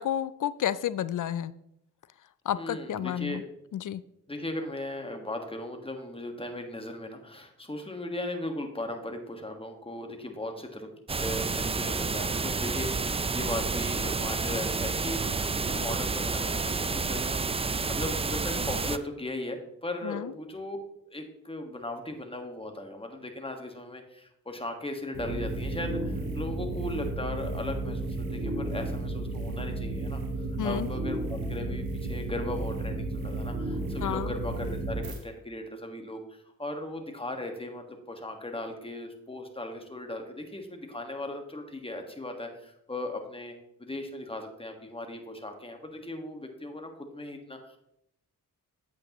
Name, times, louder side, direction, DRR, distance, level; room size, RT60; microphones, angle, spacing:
voice 1, 0.0-1.5 2.5-3.4 3.7-4.0 20.0-20.3 30.6-30.9 34.0-34.3, left 10 dB, 65° left, 16 dB, 0.5 m, -31 dB
voice 2, 2.5-3.4 4.3-10.9 11.2-20.8 21.1-43.5 43.8-47.8, left 1 dB, 15° left, 4 dB, 1.6 m, -37 dB
sound 1, 11.1-19.0, right 4 dB, 20° right, 0.4 m, -30 dB
sound 2, 25.1-35.2, right 2 dB, 90° right, 1.5 m, -33 dB
8.4 x 8.2 x 3.0 m, 0.77 s
cardioid pair, 60°, 34 cm